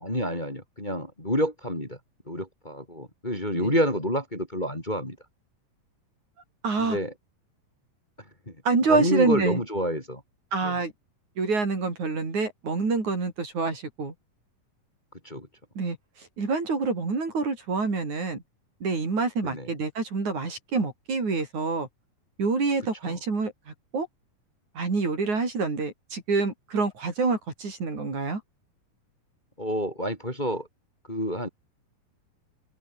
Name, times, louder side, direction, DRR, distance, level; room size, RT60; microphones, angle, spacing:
voice 1, 0.0-2.0 2.3-5.2 6.8-7.1 8.5-8.6 8.9-10.2 10.6-10.8 15.2-15.5 19.4-19.7 23.0-23.2 29.6-30.7 31.1-31.5, equal, 10° left, 4.7 m, -28 dB
voice 2, 6.6-7.0 8.7-9.6 10.5-10.9 11.4-14.1 15.8-18.4 18.8-21.9 22.4-24.1 24.8-28.4, right 4 dB, 55° right, 7.1 m, -27 dB
open air
omnidirectional pair, 4.0 m